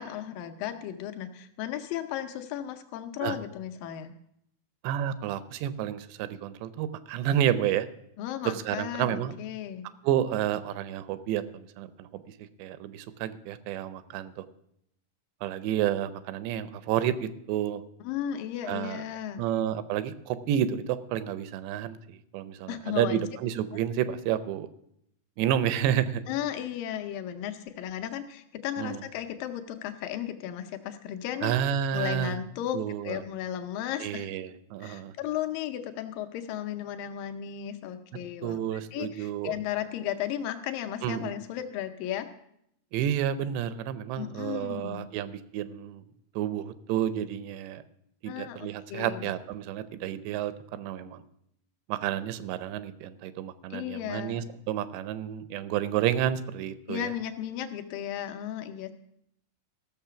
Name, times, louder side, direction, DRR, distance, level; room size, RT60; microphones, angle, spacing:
voice 1, 0.0-4.1 8.2-9.9 18.1-19.4 22.7-23.2 26.3-31.5 31.9-32.8 33.0-34.3 34.8-42.3 44.2-45.0 48.3-49.3 53.7-54.4 56.9-58.9, left 11 dB, 85° left, 7 dB, 1.9 m, -35 dB
voice 2, 4.8-7.9 8.4-9.4 10.0-14.4 15.4-17.8 18.7-19.0 19.4-24.7 25.4-26.2 28.8-29.0 31.4-32.4 32.7-33.2 34.0-35.1 38.4-39.5 41.0-41.3 42.9-46.0 46.4-47.8 48.2-51.2 51.9-57.1, right 10 dB, 90° right, 13 dB, 2.9 m, -30 dB
15.0 x 6.7 x 5.8 m, 0.74 s
omnidirectional pair, 4.9 m